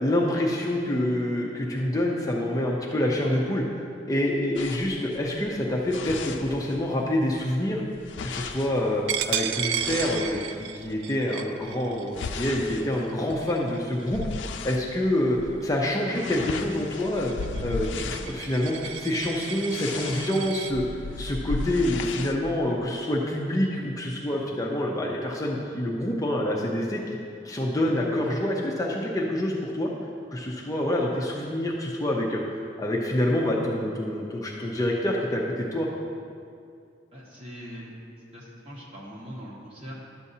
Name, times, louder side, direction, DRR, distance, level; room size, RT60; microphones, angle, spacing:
voice 1, 0.0-3.6 4.1-7.8 8.2-9.0 9.3-14.2 14.6-17.3 17.6-20.8 21.2-27.0 27.4-29.9 30.3-32.4 32.8-35.9, left 1 dB, 20° left, -2 dB, 0.6 m, -27 dB
sound 1, 4.6-7.1 7.4-11.0 11.5-14.9 15.3-15.6 15.8-22.4, left 4 dB, 90° left, 0.4 m, -36 dB
Coin (dropping), 9.1-14.5 14.9-15.2 15.6-20.7, right 10 dB, 80° right, 0.3 m, -34 dB
voice 2, 37.1-37.9 38.3-39.9, equal, 30° right, -4 dB, 1.5 m, -41 dB
11.0 x 6.9 x 2.7 m, 2.4 s
head